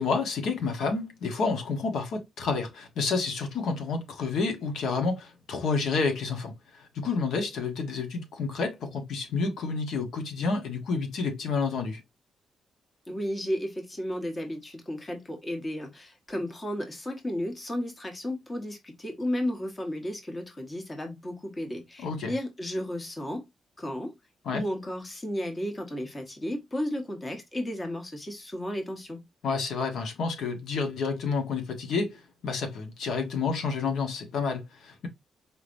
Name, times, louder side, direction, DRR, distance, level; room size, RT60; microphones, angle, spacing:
voice 1, 0.0-12.0 22.0-22.3 24.4-24.6 29.4-35.1, left 4 dB, 80° left, 1.2 m, -29 dB
voice 2, 13.1-23.5 23.8-24.1 24.5-29.2, left 1 dB, 20° left, 1.3 m, -33 dB
4.8 x 3.4 x 2.5 m
cardioid pair, 130°, 0 cm